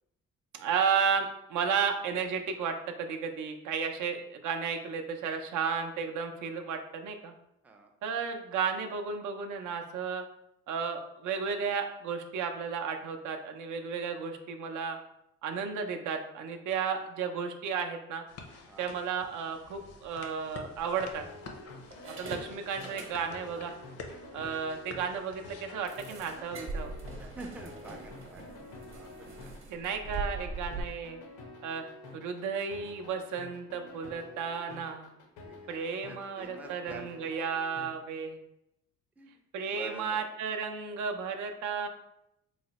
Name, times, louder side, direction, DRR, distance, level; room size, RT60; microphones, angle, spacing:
voice 1, 0.5-7.3 8.0-10.2 10.7-15.0 15.4-18.2 18.8-21.2 22.2-23.7 24.3-26.9 29.7-31.2 31.6-31.8 32.1-35.1 35.7-38.4 39.5-41.9, right 6 dB, 75° right, 4 dB, 0.5 m, -33 dB
sound 1, 18.3-26.6, left 3 dB, 55° left, 0.6 m, -48 dB
sound 2, 19.9-20.1 20.8-21.4 21.9-23.6 23.9-24.0 24.4-24.5 24.9-25.0 25.9-30.8, right 3 dB, 45° right, 0.8 m, -42 dB
sound 3, 20.8-37.9, left 3 dB, 90° left, 0.8 m, -49 dB
voice 2, 27.2-29.5 35.4-35.7 36.0-37.3 39.2-39.3 39.7-40.2, right 3 dB, 5° right, 2 dB, 0.3 m, -47 dB
3.1 x 2.0 x 4.0 m, 0.83 s
cardioid pair, 90°, 30 cm